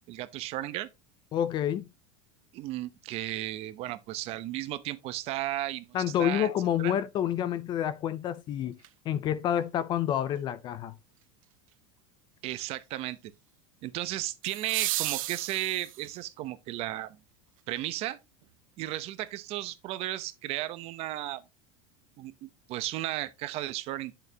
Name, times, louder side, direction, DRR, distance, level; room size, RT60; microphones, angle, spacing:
voice 1, 0.1-0.9 2.5-6.5 6.8-6.9 12.4-13.2 13.8-17.2 17.7-18.2 18.8-21.4 22.2-24.1, right 15 dB, 35° right, 0.9 m, -34 dB
voice 2, 1.3-1.8 5.9-8.8 9.1-10.9, left 10 dB, 25° left, 0.5 m, -28 dB
sound 1, 8.8-8.9 14.4-16.2 18.4-18.5, right 16 dB, 90° right, 0.8 m, -33 dB
10.5 x 6.8 x 2.9 m
supercardioid pair, 165°, 17 cm